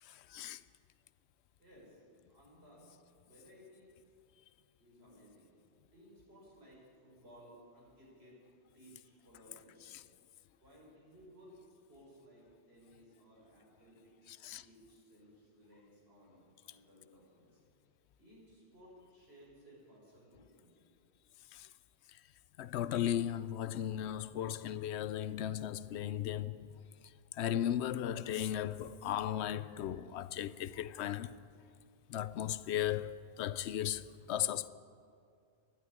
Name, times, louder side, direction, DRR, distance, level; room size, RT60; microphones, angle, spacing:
voice 1, 1.6-2.0 2.3-3.0 3.2-3.9 4.8-5.5 5.9-8.4 8.7-9.9 10.6-17.6 18.2-20.9 30.0-30.1, equal, 70° right, 5.9 m, -60 dB
voice 2, 14.3-14.6 22.6-26.7 27.4-31.3 32.1-34.0 34.3-34.7, left 11 dB, 90° left, 0.8 m, -36 dB
12.5 x 11.0 x 9.7 m
omnidirectional pair, 1.1 m